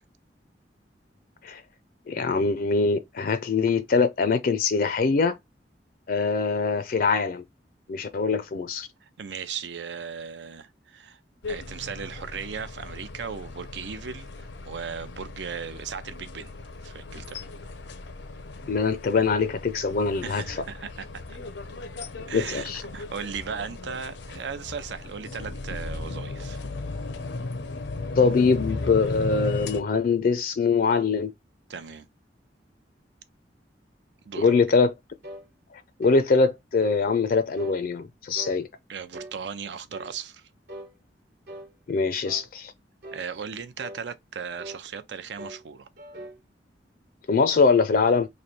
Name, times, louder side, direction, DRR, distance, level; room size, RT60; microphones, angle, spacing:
voice 1, 2.1-5.4 6.1-7.4 7.9-8.9 18.7-20.6 22.3-22.8 28.2-31.3 34.3-34.9 36.0-38.7 41.9-42.7 47.3-48.3, left 4 dB, 55° left, 0.4 m, -23 dB
voice 2, 9.0-11.2 11.5-16.5 16.8-17.4 20.2-21.4 22.3-26.6 31.7-32.1 34.3-34.5 38.9-40.5 43.1-45.9, right 6 dB, 80° right, 0.5 m, -37 dB
sound 1, 11.4-29.8, left 2 dB, 90° left, 0.7 m, -36 dB
sound 2, 34.4-34.7 35.2-35.5 36.0-36.3 36.8-37.0 37.6-37.8 38.3-38.6 39.1-39.4 39.9-40.1 40.7-40.9 41.4-41.7 42.2-42.5 43.0-43.3 43.8-44.0 44.6-44.8 45.4-45.6 46.0-46.4, right 1 dB, 60° right, 1.1 m, -41 dB
3.2 x 2.6 x 4.1 m
head